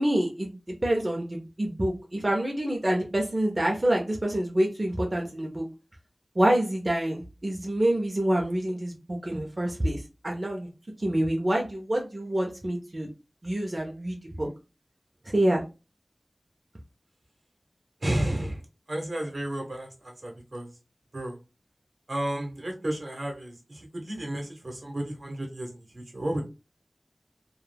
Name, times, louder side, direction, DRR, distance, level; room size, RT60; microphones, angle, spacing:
voice 1, 0.0-5.7 6.4-10.7 11.0-13.1 13.4-14.5 15.3-15.6, right 1 dB, 40° right, 0 dB, 0.5 m, -27 dB
voice 2, 18.0-18.6 18.9-20.7 21.1-21.3 22.1-26.4, right 1 dB, 75° right, 1 dB, 0.9 m, -32 dB
2.3 x 2.1 x 3.3 m, 0.30 s
wide cardioid pair, 50°, 0 cm